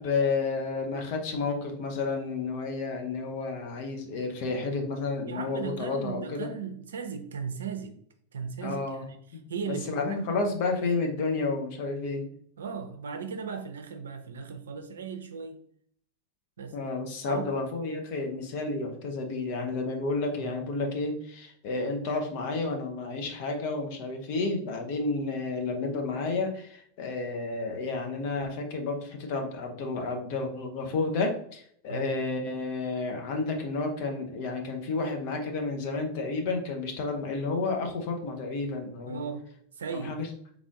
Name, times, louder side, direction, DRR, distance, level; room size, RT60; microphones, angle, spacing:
voice 1, 0.0-6.5 8.6-12.3 16.7-39.2 39.9-40.3, left 3 dB, 55° left, 3 dB, 0.8 m, -31 dB
voice 2, 5.3-7.9 8.3-9.0 9.5-10.2 12.6-15.6 16.6-16.8 17.2-17.5 20.4-20.6 31.9-32.1 39.1-39.4 39.8-40.2, right 6 dB, 70° right, 7 dB, 0.5 m, -36 dB
3.5 x 2.5 x 3.6 m, 0.62 s
figure-of-eight pair, 90°, 0 cm